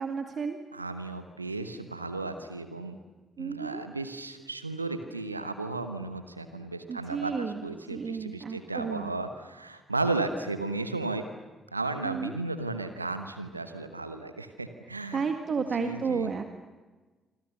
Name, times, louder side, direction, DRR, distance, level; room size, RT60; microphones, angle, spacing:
voice 1, 0.0-0.6 3.4-3.8 6.9-7.7 7.9-9.1 12.0-12.3 15.1-16.5, right 5 dB, 45° right, 6 dB, 1.8 m, -32 dB
voice 2, 0.7-3.0 3.4-11.2 11.7-15.2 15.7-16.3, right 3 dB, 90° right, 9 dB, 1.0 m, -34 dB
27.0 x 26.0 x 6.9 m, 1.3 s
figure-of-eight pair, 40°, 0 cm